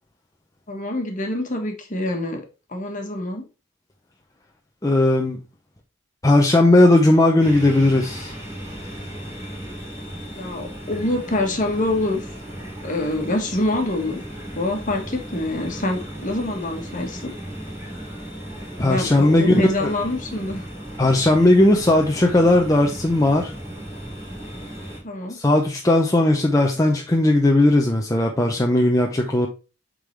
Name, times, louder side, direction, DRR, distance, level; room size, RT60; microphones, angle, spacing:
voice 1, 0.7-2.4 2.7-3.4 10.3-12.3 12.8-14.2 14.5-17.3 18.8-20.7 25.0-25.4, left 2 dB, 40° left, 1.4 m, -26 dB
voice 2, 4.8-5.4 6.2-8.3 18.8-19.9 21.0-23.5 25.3-29.5, left 1 dB, 15° left, 0.6 m, -17 dB
sound 1, 7.4-25.0, right 1 dB, 15° right, 2.6 m, -36 dB
8.1 x 3.8 x 3.3 m
head